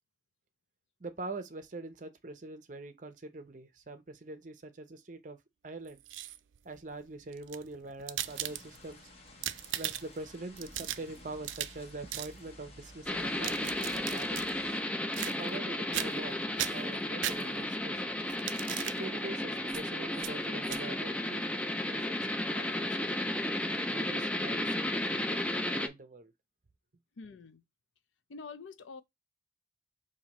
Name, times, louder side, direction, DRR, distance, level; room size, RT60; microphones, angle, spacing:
voice 1, 1.0-5.4 5.6-6.0 6.6-9.0 9.7-14.5 15.2-18.1 18.9-22.2 22.5-23.1 23.9-26.3, right 2 dB, 40° right, 0.7 m, -44 dB
sound 1, 5.9-6.6 7.3-8.9 9.3-10.2 10.6-11.8 12.1-12.3 13.2-14.5 15.1-15.6 15.9-16.3 16.6-17.8 18.3-19.0 19.7-19.8 20.2-20.3 20.6-20.8, right 12 dB, 90° right, 0.4 m, -38 dB
sound 2, 8.2-14.8, left 1 dB, 35° left, 1.0 m, -53 dB
sound 3, 13.1-25.9, left 1 dB, 5° left, 0.3 m, -33 dB
voice 2, 27.2-27.6 28.3-29.0, left 4 dB, 85° left, 0.5 m, -46 dB
5.6 x 2.7 x 2.9 m
head